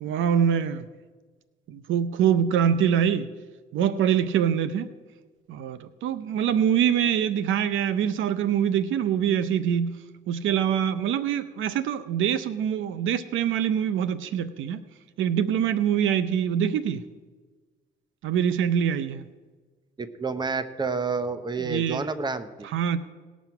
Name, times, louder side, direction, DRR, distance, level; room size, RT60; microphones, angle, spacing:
voice 1, 0.0-0.9 1.7-3.3 3.7-4.9 5.5-10.0 10.3-14.8 15.2-17.0 18.2-19.2 21.6-22.1 22.6-23.0, right 9 dB, 80° right, 14 dB, 0.6 m, -24 dB
voice 2, 20.0-22.7, right 4 dB, 20° right, 11 dB, 0.8 m, -29 dB
18.5 x 6.2 x 5.8 m, 1.4 s
cardioid pair, 90°, 20 cm